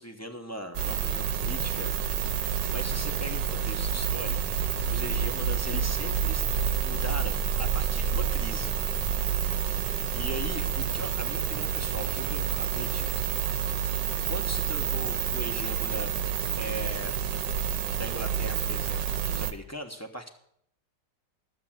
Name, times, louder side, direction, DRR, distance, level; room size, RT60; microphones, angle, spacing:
voice 1, 0.0-1.9 2.7-4.5 4.8-6.5 6.8-8.8 9.8-13.8 14.3-16.1 16.6-17.1 18.0-20.3, equal, 10° left, 4 dB, 0.9 m, -39 dB
sound 1, 0.7-19.5, right 8 dB, 75° right, 1.4 m, -29 dB
12.5 x 7.6 x 7.5 m, 0.70 s
omnidirectional pair, 1.9 m